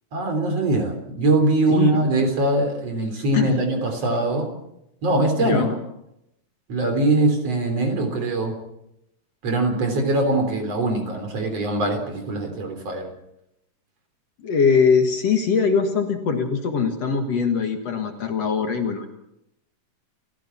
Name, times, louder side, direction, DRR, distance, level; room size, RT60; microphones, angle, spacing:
voice 1, 0.1-4.5 5.0-5.7 6.7-8.6 9.4-13.1, right 2 dB, 50° right, 5 dB, 4.6 m, -22 dB
voice 2, 1.7-2.2 3.3-3.6 5.4-5.8 14.4-19.1, left 5 dB, 55° left, 5 dB, 2.5 m, -22 dB
30.0 x 15.5 x 5.9 m, 0.82 s
omnidirectional pair, 3.8 m